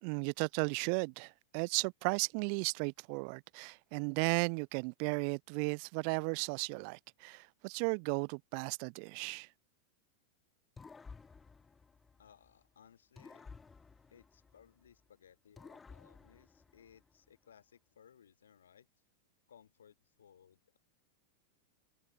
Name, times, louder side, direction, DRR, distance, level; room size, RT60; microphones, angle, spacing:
voice 1, 0.0-9.5, right 40 dB or more, 45° right, 0.5 m, -35 dB
sound 1, 10.8-12.7 13.2-15.0 15.6-17.3, left 4 dB, 15° left, 0.8 m, -55 dB
voice 2, 12.2-13.5 14.1-18.9 19.5-20.8, left 8 dB, 65° left, 5.6 m, -62 dB
figure-of-eight pair, 90°, 0 cm